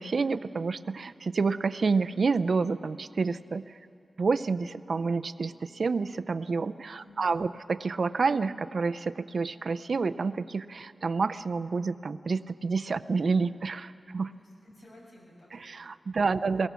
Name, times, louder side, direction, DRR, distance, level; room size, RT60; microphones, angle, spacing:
voice 1, 0.0-3.8 4.2-14.3 15.5-16.7, right 4 dB, 65° right, 12 dB, 0.5 m, -29 dB
voice 2, 7.0-7.5 14.4-15.8, left 1 dB, 65° left, -3 dB, 6.8 m, -54 dB
24.0 x 18.5 x 7.0 m, 2.4 s
wide cardioid pair, 110°, 0 cm